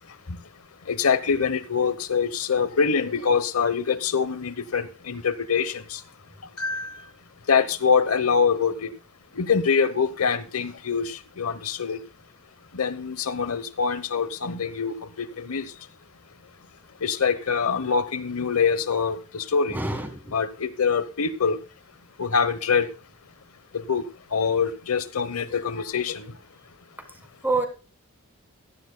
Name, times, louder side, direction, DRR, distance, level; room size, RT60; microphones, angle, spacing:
voice 1, 0.9-6.0 6.6-7.0 7.5-8.9 9.4-12.0 12.7-15.7 17.0-19.8 20.3-21.6 22.2-22.9 23.7-24.0 24.3-26.3, left 6 dB, 90° left, 0.9 m, -24 dB
voice 2, 19.7-20.3 27.4-27.7, right 2 dB, 10° right, 1.5 m, -26 dB
16.0 x 12.0 x 2.2 m
head